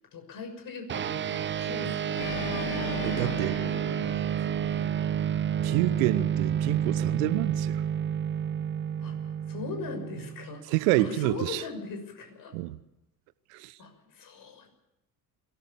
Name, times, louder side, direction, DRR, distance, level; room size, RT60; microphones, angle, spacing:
voice 1, 0.1-5.5 9.0-12.6 13.8-14.7, left 4 dB, 45° left, 6.4 m, -41 dB
sound 1, 0.9-10.6, right 9 dB, 25° right, 0.8 m, -30 dB
Organ, 2.1-5.3, left 12 dB, 70° left, 1.6 m, -38 dB
voice 2, 3.0-3.6 5.6-7.8 10.7-11.6 12.5-12.8 13.5-13.7, right 17 dB, 55° right, 1.1 m, -28 dB
22.5 x 18.5 x 7.2 m
figure-of-eight pair, 60°, 48 cm